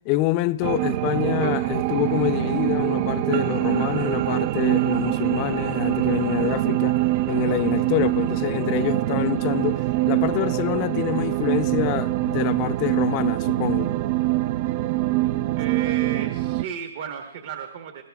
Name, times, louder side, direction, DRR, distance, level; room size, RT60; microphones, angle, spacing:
voice 1, 0.0-7.0 7.3-13.9, left 16 dB, 35° left, 0.5 m, -26 dB
sound 1, 0.6-16.6, right 16 dB, 40° right, 0.4 m, -24 dB
voice 2, 15.5-18.0, right 8 dB, 55° right, 1.3 m, -34 dB
20.0 x 17.5 x 2.3 m
hypercardioid pair, 140°, 0 cm